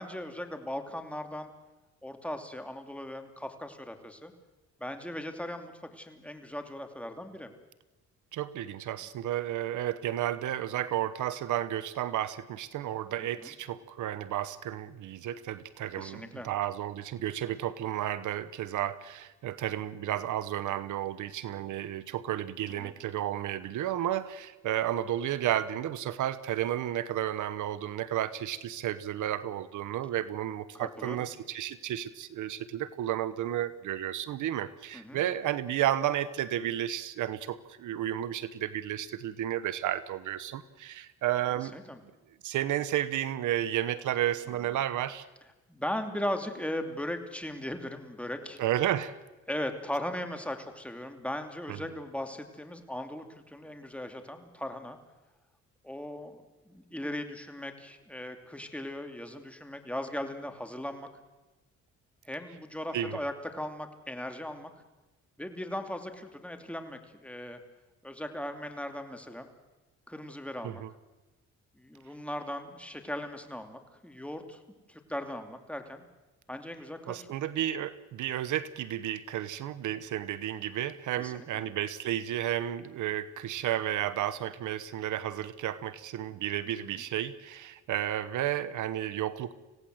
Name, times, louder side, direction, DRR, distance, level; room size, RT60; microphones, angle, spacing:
voice 1, 0.0-1.5 2.0-4.3 4.8-7.5 13.4-13.5 15.9-16.5 22.8-22.9 30.7-31.3 34.9-35.2 41.6-42.0 45.7-48.6 49.5-55.0 55.8-61.1 62.2-64.7 65.4-67.6 68.0-69.5 70.1-70.8 71.7-74.6 74.9-76.1 76.5-77.3 81.2-81.6 86.7-87.0, left 1 dB, 5° left, 6 dB, 2.9 m, -38 dB
voice 2, 8.3-41.7 42.4-45.2 48.6-49.2 51.7-51.8 62.9-63.1 70.6-70.9 77.1-89.5, right 12 dB, 80° right, 16 dB, 1.1 m, -32 dB
26.5 x 17.0 x 7.9 m, 1.1 s
cardioid pair, 90°, 30 cm